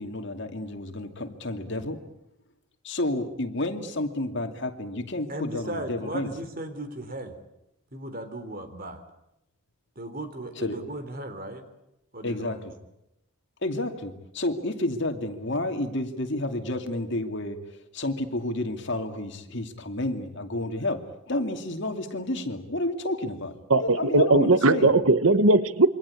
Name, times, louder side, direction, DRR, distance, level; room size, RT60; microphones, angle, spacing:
voice 1, 0.0-2.0 2.8-6.3 10.5-10.8 12.2-12.7 13.6-17.7 17.9-24.9, left 1 dB, 55° left, 6 dB, 2.6 m, -30 dB
voice 2, 5.3-7.3 7.9-9.0 10.0-11.6 12.1-12.6, right 1 dB, 40° right, 9 dB, 3.7 m, -36 dB
voice 3, 23.7-25.9, right 2 dB, 65° right, 13 dB, 1.1 m, -19 dB
27.5 x 24.0 x 8.5 m, 0.86 s
head